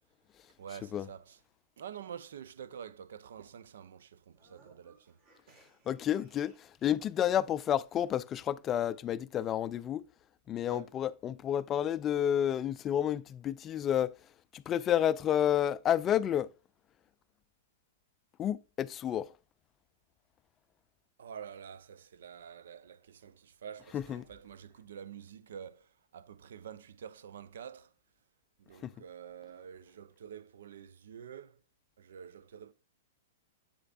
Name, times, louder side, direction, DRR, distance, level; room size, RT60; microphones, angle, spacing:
voice 1, 0.6-1.4 1.8-5.2 5.5-5.6 10.7-11.0 21.2-27.9 28.6-31.6 32.0-32.7, right 8 dB, 70° right, 0.5 m, -48 dB
sound 1, 4.3-7.3, right 3 dB, 40° right, 2.8 m, -65 dB
voice 2, 5.9-6.5 6.8-10.0 10.5-14.1 14.5-16.5 18.4-19.3 23.9-24.2 28.8-28.9, left 10 dB, 25° left, 0.3 m, -30 dB
7.9 x 6.5 x 2.4 m
hypercardioid pair, 115°, 0 cm